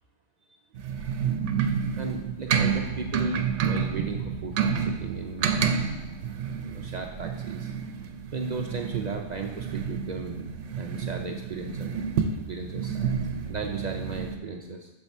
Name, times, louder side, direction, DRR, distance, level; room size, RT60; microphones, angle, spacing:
sound 1, 0.7-14.4, right 7 dB, 80° right, 0.9 m, -30 dB
voice 1, 2.0-5.7 6.6-7.7 8.3-10.5 10.8-12.0 12.5-13.0 13.5-14.9, right 3 dB, 50° right, 3 dB, 0.5 m, -35 dB
6.2 x 4.7 x 5.4 m, 1.0 s
omnidirectional pair, 1.2 m